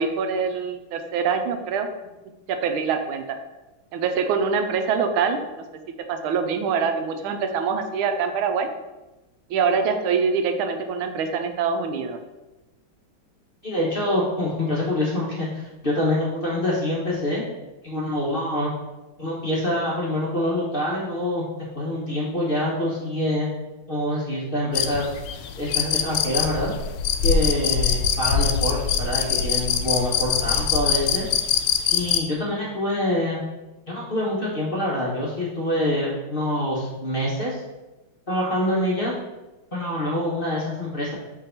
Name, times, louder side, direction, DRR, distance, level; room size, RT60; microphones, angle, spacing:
voice 1, 0.0-1.9 2.5-3.4 3.9-8.7 9.5-12.2, right 5 dB, 80° right, 7 dB, 1.4 m, -24 dB
voice 2, 13.6-17.4 17.8-18.7 19.2-21.4 21.7-23.5 23.9-25.1 25.6-26.7 27.2-31.3 31.9-33.4 33.9-37.6 38.3-39.2 39.7-41.1, left 1 dB, 40° left, -5 dB, 0.8 m, -25 dB
sound 1, 24.8-32.2, left 8 dB, 80° left, 1.4 m, -23 dB
4.7 x 3.7 x 5.6 m, 1.0 s
omnidirectional pair, 2.4 m